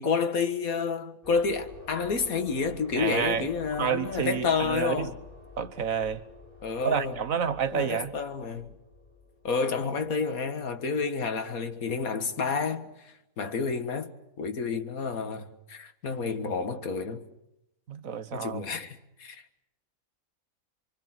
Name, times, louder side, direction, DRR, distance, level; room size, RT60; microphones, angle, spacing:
voice 1, 0.0-5.2 6.6-7.2 7.7-8.7 9.4-17.3 18.3-19.4, left 5 dB, 80° left, 2.1 m, -30 dB
sound 1, 1.2-10.7, left 3 dB, 40° left, 7.7 m, -49 dB
voice 2, 2.9-3.5 3.8-5.1 5.6-6.2 6.8-8.1 17.9-18.6, right 7 dB, 70° right, 1.6 m, -29 dB
27.0 x 24.0 x 6.1 m
omnidirectional pair, 1.5 m